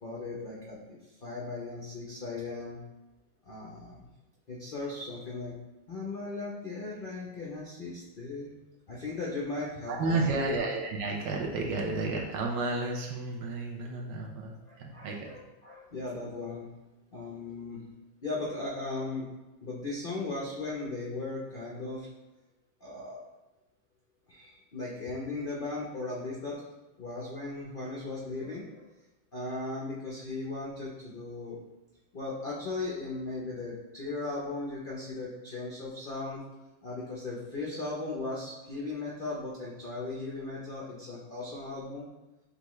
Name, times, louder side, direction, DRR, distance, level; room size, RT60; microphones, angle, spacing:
voice 1, 0.0-2.8 3.4-4.1 4.5-5.5 5.9-8.5 8.9-10.6 14.7-16.7 17.1-17.8 18.2-19.3 19.6-22.1 22.8-23.2 24.3-26.6 27.0-28.9 29.3-31.6 32.1-36.4 36.8-42.1, left 3 dB, 80° left, -4 dB, 0.4 m, -37 dB
voice 2, 9.9-15.4, right 3 dB, 70° right, 0 dB, 1.2 m, -32 dB
6.7 x 2.3 x 3.0 m, 1.0 s
omnidirectional pair, 2.0 m